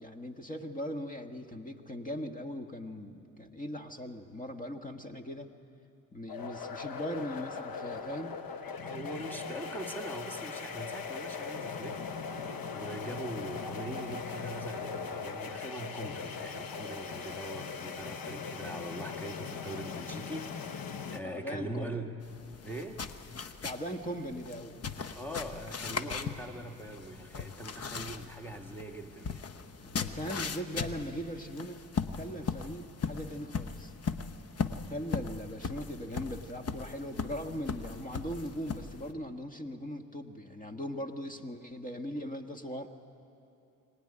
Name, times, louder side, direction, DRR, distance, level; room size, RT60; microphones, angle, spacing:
voice 1, 0.0-5.5 6.1-8.4 18.3-18.4 21.2-22.0 23.6-24.8 29.8-31.8 32.2-33.9 34.9-42.9, equal, 25° left, 6 dB, 1.5 m, -39 dB
sound 1, 6.3-21.2, left 5 dB, 80° left, 1.1 m, -39 dB
voice 2, 8.8-12.0 12.7-22.1 22.6-23.0 25.1-29.5, right 1 dB, 5° left, 4 dB, 1.9 m, -42 dB
sound 2, 22.2-39.1, left 5 dB, 45° left, 1.0 m, -39 dB
24.0 x 18.0 x 10.0 m, 2.8 s
cardioid pair, 95°, 34 cm